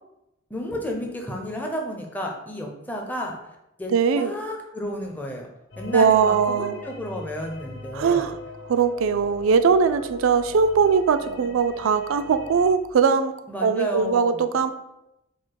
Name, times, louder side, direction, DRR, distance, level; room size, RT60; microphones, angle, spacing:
voice 1, 0.5-3.4 3.8-5.5 5.8-8.3 13.5-14.6, equal, 10° left, 0 dB, 0.6 m, -32 dB
voice 2, 3.9-4.3 5.9-6.8 7.9-8.4 8.7-13.3 13.6-14.7, right 6 dB, 85° right, 10 dB, 0.4 m, -20 dB
sound 1, 5.7-12.7, left 3 dB, 60° left, 0.6 m, -40 dB
4.7 x 2.1 x 4.5 m, 0.87 s
head